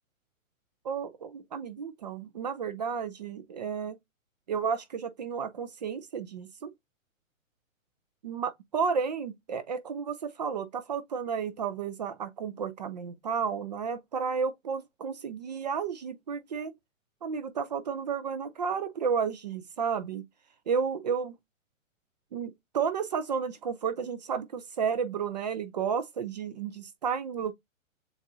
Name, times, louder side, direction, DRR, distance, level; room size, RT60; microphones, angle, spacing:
voice 1, 0.8-4.0 4.5-6.7 8.2-16.7 17.2-20.2 20.7-21.4 22.3-27.5, right 6 dB, 35° right, 0.4 m, -32 dB
6.9 x 2.3 x 2.6 m
hypercardioid pair, 140°, 41 cm